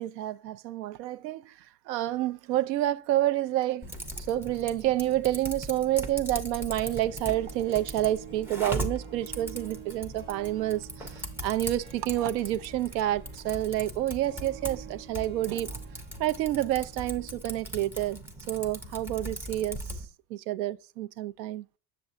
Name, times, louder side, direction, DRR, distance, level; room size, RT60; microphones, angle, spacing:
voice 1, 0.0-1.6 1.9-3.9 4.3-15.8 16.2-18.2 18.5-19.8 20.3-21.6, right 14 dB, 80° right, 0.6 m, -29 dB
Typing, 3.8-20.1, right 1 dB, 5° right, 0.4 m, -39 dB
Harp, 6.5-17.6 17.8-17.9, right 10 dB, 20° right, 0.8 m, -50 dB
7.1 x 6.8 x 2.5 m
supercardioid pair, 125°, 50 cm